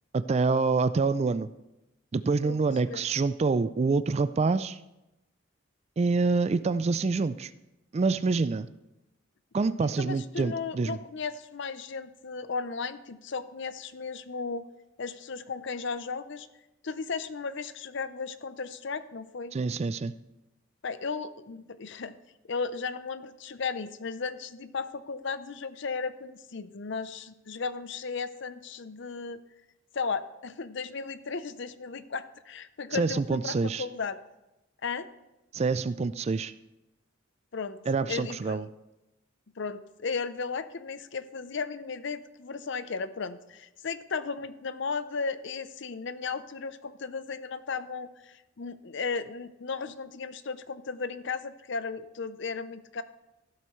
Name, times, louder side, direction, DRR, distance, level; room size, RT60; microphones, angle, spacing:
voice 1, 0.1-1.5 2.1-4.8 6.0-7.5 7.9-8.7 9.5-11.0 19.5-20.1 32.9-33.8 35.5-36.5 37.9-38.6, right 4 dB, 30° right, 15 dB, 0.3 m, -26 dB
voice 2, 9.8-14.7 15.0-16.5 16.8-19.5 20.8-22.2 22.5-29.4 29.9-34.2 34.8-35.1 37.5-37.8 38.1-38.6 39.6-53.0, left 5 dB, 60° left, 13 dB, 0.6 m, -35 dB
14.5 x 12.0 x 3.1 m, 0.94 s
head